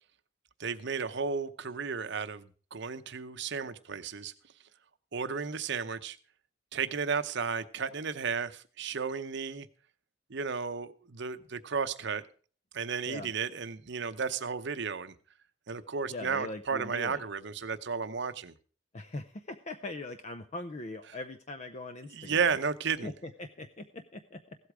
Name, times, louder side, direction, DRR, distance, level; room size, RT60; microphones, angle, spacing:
voice 1, 0.6-4.3 5.1-6.2 6.7-9.7 10.3-12.2 12.7-15.1 15.7-18.5 22.1-23.1, right 5 dB, 55° right, 12 dB, 0.8 m, -33 dB
voice 2, 16.1-17.2 18.9-22.6 23.0-24.6, left 2 dB, 35° left, 9 dB, 0.6 m, -41 dB
16.0 x 8.2 x 4.8 m, 0.41 s
head